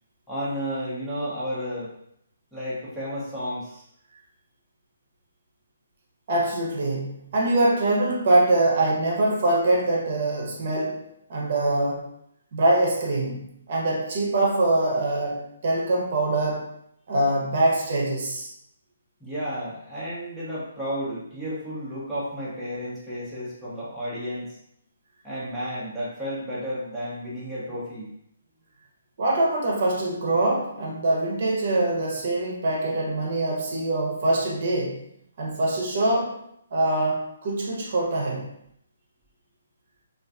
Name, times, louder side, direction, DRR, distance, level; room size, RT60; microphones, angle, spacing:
voice 1, 0.3-1.9 2.5-3.8 19.2-24.6 25.2-28.1, equal, ahead, -11 dB, 0.5 m, -32 dB
voice 2, 6.3-11.0 11.3-12.1 12.5-16.7 17.1-18.5 29.2-35.0 35.4-36.4 36.7-38.5, right 2 dB, 45° right, -2 dB, 0.6 m, -24 dB
2.5 x 2.4 x 2.3 m, 0.74 s
hypercardioid pair, 165°, 0 cm